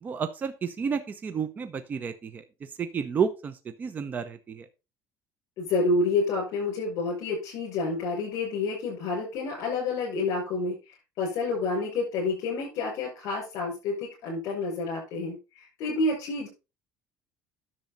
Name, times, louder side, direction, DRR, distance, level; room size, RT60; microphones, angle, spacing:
voice 1, 0.0-4.7, right 6 dB, 25° right, 10 dB, 0.8 m, -31 dB
voice 2, 5.6-10.8 11.2-16.5, left 3 dB, 55° left, -2 dB, 6.3 m, -29 dB
10.5 x 6.9 x 3.9 m, 0.28 s
cardioid pair, 160°, 7 cm